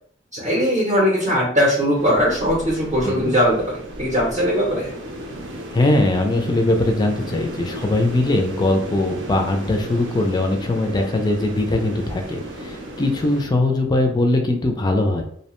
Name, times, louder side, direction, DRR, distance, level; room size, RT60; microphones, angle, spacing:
voice 1, 0.3-4.9, equal, 35° right, -3 dB, 0.6 m, -20 dB
sound 1, 1.9-13.4, right 1 dB, 75° right, 0.6 m, -34 dB
voice 2, 5.7-15.2, left 2 dB, 20° left, 3 dB, 0.3 m, -21 dB
2.6 x 2.1 x 2.9 m, 0.63 s
head